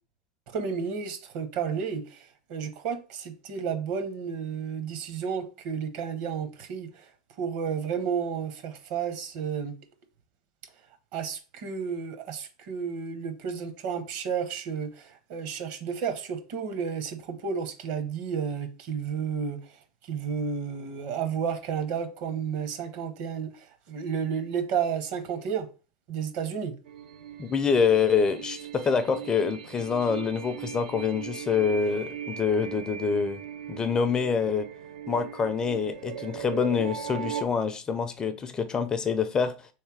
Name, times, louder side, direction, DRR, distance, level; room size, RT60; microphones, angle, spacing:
voice 1, 0.5-7.0 7.4-9.8 11.1-19.6 20.1-25.7 26.1-26.7, right 7 dB, 55° right, 0.9 m, -32 dB
sound 1, 26.8-37.4, right 9 dB, 85° right, 0.4 m, -39 dB
voice 2, 27.4-33.4 33.7-34.7 35.1-39.7, left 6 dB, 20° left, 0.4 m, -26 dB
3.3 x 3.2 x 4.6 m
supercardioid pair, 135°, 4 cm